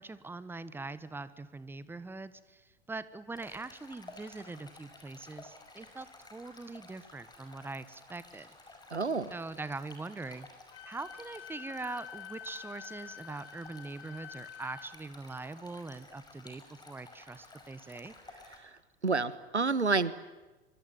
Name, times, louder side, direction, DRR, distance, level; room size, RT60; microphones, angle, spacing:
voice 1, 0.0-8.5 9.3-10.5 10.8-18.1, right 3 dB, 5° right, 15 dB, 1.2 m, -42 dB
Stream, 3.3-18.6, left 2 dB, 10° left, 5.5 m, -54 dB
voice 2, 8.9-9.3 19.0-20.1, right 4 dB, 85° right, 16 dB, 1.3 m, -28 dB
Wind instrument woodwind instrument, 10.7-14.9, left 9 dB, 50° left, 3.2 m, -48 dB
24.5 x 24.5 x 9.4 m, 1.2 s
figure-of-eight pair, 90°, 33 cm